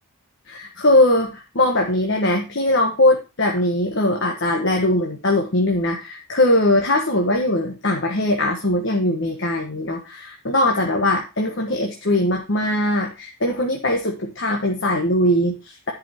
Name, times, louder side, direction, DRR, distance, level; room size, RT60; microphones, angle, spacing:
voice 1, 0.5-15.9, left 1 dB, 55° left, 1 dB, 1.3 m, -20 dB
10.5 x 5.6 x 4.4 m, 0.29 s
head